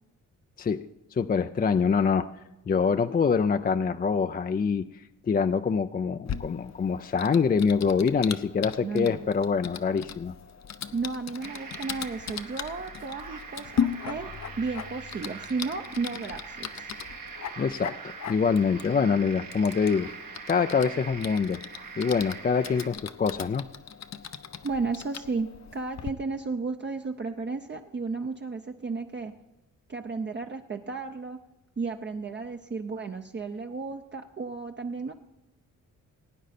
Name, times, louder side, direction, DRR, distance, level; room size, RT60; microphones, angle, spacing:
voice 1, 1.1-2.3 2.7-4.9 5.3-10.3 17.6-20.1 20.5-21.6 22.0-23.7, left 5 dB, 30° left, 10 dB, 0.4 m, -25 dB
Typing, 6.2-26.1, left 7 dB, 55° left, 0.7 m, -38 dB
voice 2, 8.8-9.2 10.9-14.3 14.6-16.9 24.6-29.3 29.9-31.4 31.8-35.1, right 4 dB, 35° right, 4 dB, 0.7 m, -33 dB
sound 1, 11.4-22.9, right 5 dB, 80° right, 1.9 m, -43 dB
sound 2, 14.0-18.1, left 5 dB, 85° left, 1.0 m, -51 dB
18.0 x 9.2 x 4.2 m, 0.95 s
cardioid pair, 75°, 33 cm